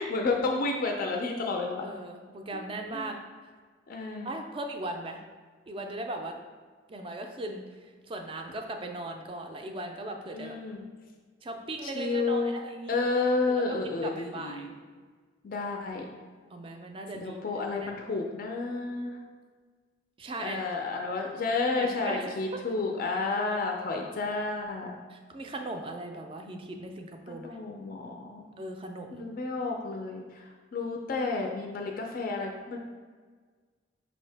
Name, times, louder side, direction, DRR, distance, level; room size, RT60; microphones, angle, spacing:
voice 1, 0.0-1.9 2.9-3.1 3.9-4.3 10.3-10.9 11.8-12.5 12.9-14.7 15.4-16.1 17.2-19.2 20.4-25.0 27.3-28.4 29.1-32.8, left 3 dB, 50° left, 2 dB, 0.4 m, -31 dB
voice 2, 1.8-3.2 4.2-5.2 5.7-6.3 6.9-10.6 11.4-13.0 13.5-13.6 14.0-14.7 16.5-17.4 17.8-17.9 20.2-20.6 21.8-22.3 23.4-23.6 25.1-27.5 28.6-29.3, right 2 dB, 30° right, 4 dB, 0.4 m, -38 dB
5.2 x 2.7 x 3.3 m, 1.5 s
head